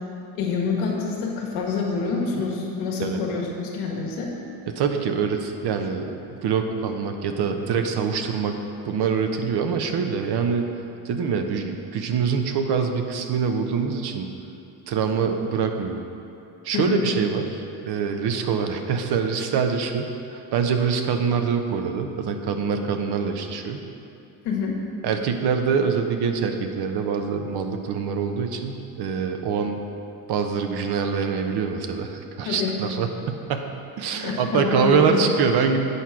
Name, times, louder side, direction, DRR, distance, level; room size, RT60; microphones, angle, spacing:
voice 1, 0.3-4.3 16.7-17.0 24.4-24.8 32.4-32.7 34.2-35.3, left 5 dB, 85° left, -1 dB, 1.5 m, -26 dB
voice 2, 4.7-8.5 8.8-10.6 11.0-14.3 14.9-16.0 16.6-23.8 25.0-29.8 30.3-35.8, right 6 dB, 60° right, 5 dB, 0.9 m, -25 dB
8.3 x 4.7 x 5.8 m, 2.7 s
supercardioid pair, 80°, 44 cm